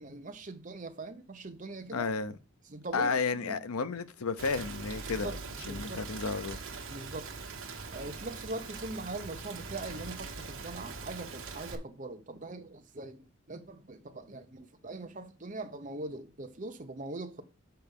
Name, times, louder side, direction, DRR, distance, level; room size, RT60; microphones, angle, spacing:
voice 1, 0.0-2.1 2.7-3.6 5.1-5.4 5.6-6.1 6.9-7.3 7.9-17.4, right 2 dB, 35° right, 0.8 m, -42 dB
voice 2, 1.9-2.4 2.9-5.4 5.7-6.6, left 4 dB, 90° left, 0.6 m, -32 dB
Rain, 4.4-11.8, right 4 dB, 75° right, 1.3 m, -42 dB
6.9 x 4.7 x 5.3 m
head